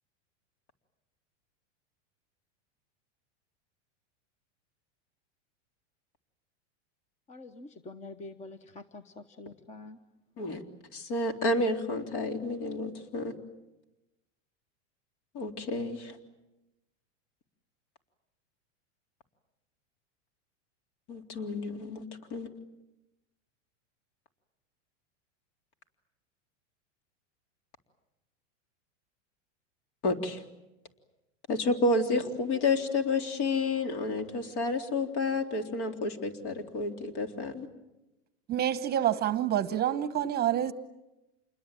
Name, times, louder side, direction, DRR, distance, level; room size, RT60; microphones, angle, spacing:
voice 1, 7.3-10.0, left 2 dB, 20° left, 1.0 m, -46 dB
voice 2, 10.9-13.3 15.3-16.2 21.1-22.0 22.3-22.5 30.0-30.4 31.5-37.7, left 2 dB, 55° left, 3.7 m, -30 dB
voice 3, 38.5-40.7, right 11 dB, 25° right, 1.1 m, -27 dB
28.0 x 21.5 x 9.1 m
supercardioid pair, 135°, 37 cm